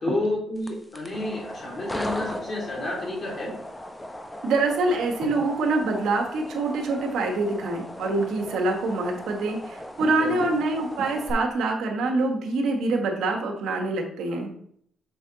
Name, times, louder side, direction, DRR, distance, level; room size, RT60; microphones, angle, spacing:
voice 1, 0.0-3.5 10.2-10.5, left 2 dB, 45° left, -3 dB, 3.0 m, -30 dB
sound 1, 0.5-11.3, left 1 dB, 10° left, 0.8 m, -38 dB
voice 2, 4.4-14.5, right 3 dB, 75° right, 2 dB, 1.3 m, -25 dB
6.8 x 4.6 x 3.9 m, 0.66 s
cardioid pair, 90°, 0 cm